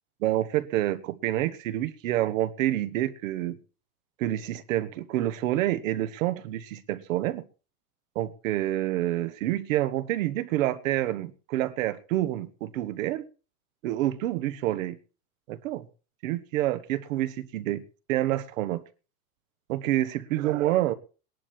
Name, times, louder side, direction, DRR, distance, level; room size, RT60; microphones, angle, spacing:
voice 1, 0.2-3.6 4.2-7.4 8.1-13.2 13.8-15.0 15.5-15.8 16.2-17.8 18.1-18.8 19.7-20.9, right 14 dB, 60° right, 13 dB, 1.3 m, -28 dB
18.5 x 11.0 x 4.5 m, 0.36 s
supercardioid pair, 170°, 44 cm